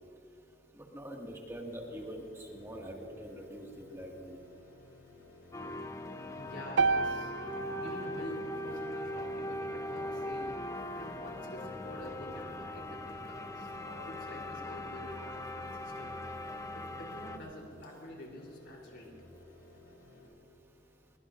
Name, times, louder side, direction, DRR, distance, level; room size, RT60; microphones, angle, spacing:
voice 1, 0.9-4.4, equal, 15° right, 0 dB, 2.0 m, -44 dB
sound 1, 1.6-20.3, left 1 dB, 60° left, 4.8 m, -56 dB
sound 2, 5.5-17.4, left 1 dB, 20° left, 0.8 m, -40 dB
voice 2, 6.4-7.3 7.6-10.6 10.9-16.1 16.7-19.1, equal, 80° left, 0 dB, 3.5 m, -47 dB
sound 3, 6.8-10.9, right 4 dB, 80° right, 0.5 m, -34 dB
22.5 x 21.5 x 2.6 m, 2.6 s
head